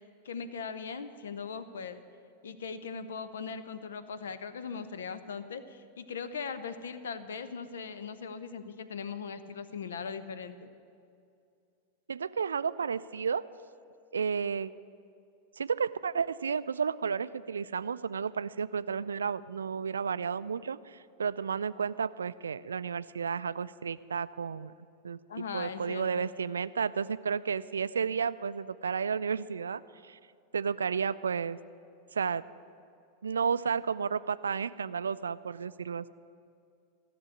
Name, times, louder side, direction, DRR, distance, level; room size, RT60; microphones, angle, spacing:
voice 1, 0.2-2.0 2.4-10.7 25.3-26.3, left 5 dB, 65° left, 12 dB, 0.8 m, -39 dB
voice 2, 12.1-13.4 14.1-14.7 15.6-24.7 25.0-30.2 30.5-31.6 32.1-32.4 33.2-36.1, right 6 dB, 70° right, 16 dB, 0.3 m, -32 dB
14.5 x 6.9 x 9.8 m, 2.4 s
figure-of-eight pair, 90°, 0 cm